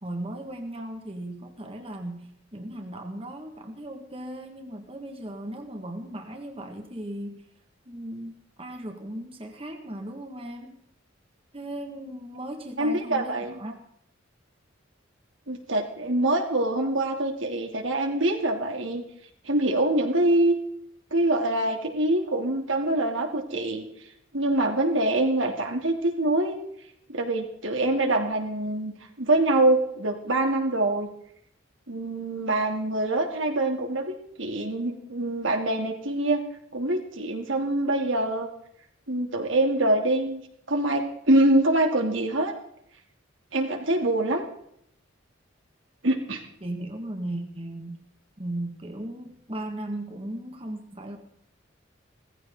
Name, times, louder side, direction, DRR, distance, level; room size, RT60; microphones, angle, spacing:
voice 1, 0.0-7.4 7.9-8.3 8.6-10.8 11.5-13.8 46.6-48.0 48.4-51.2, right 1 dB, 30° right, 3 dB, 2.0 m, -37 dB
voice 2, 12.8-13.5 15.5-19.0 19.4-20.5 21.1-23.8 24.3-26.6 27.1-28.9 29.2-31.1 31.9-36.4 36.7-38.5 39.1-40.4 40.7-42.5 43.5-44.4 46.0-46.4, right 1 dB, 80° right, 3 dB, 2.9 m, -24 dB
18.0 x 15.5 x 3.9 m, 0.71 s
head